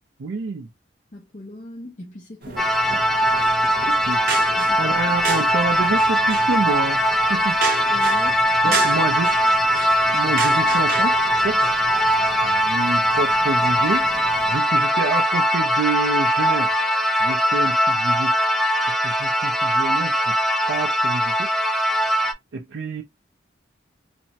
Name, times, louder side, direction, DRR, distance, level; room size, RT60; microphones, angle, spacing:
voice 1, 0.2-0.7 3.9-4.2 4.8-7.0 7.3-7.6 8.6-9.3 10.1-11.2 11.4-11.6 12.4-14.1 14.5-16.8 17.2-18.4 19.0-20.4 20.7-21.5 22.5-23.0, right 4 dB, 85° right, 0.5 m, -27 dB
voice 2, 1.1-2.6 4.5-5.0 7.9-8.4 8.6-8.8, left 1 dB, 40° left, 0.6 m, -39 dB
sound 1, 2.4-14.6, right 4 dB, 50° right, 0.7 m, -33 dB
sound 2, 2.6-22.3, equal, ahead, 0.3 m, -20 dB
3.3 x 2.1 x 2.7 m
head